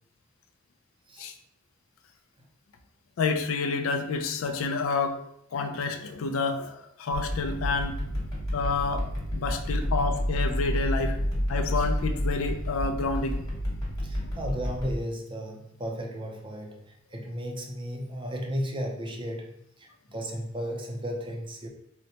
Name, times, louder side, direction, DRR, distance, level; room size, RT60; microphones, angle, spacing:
voice 1, 3.2-5.2 5.5-8.0 8.5-9.0 9.3-11.2 11.5-13.4, left 4 dB, 80° left, 7 dB, 0.4 m, -29 dB
sound 1, 7.1-14.9, equal, 20° left, 1.1 m, -30 dB
voice 2, 14.0-21.7, equal, 25° right, 1 dB, 0.5 m, -35 dB
4.0 x 2.1 x 2.8 m, 0.76 s
head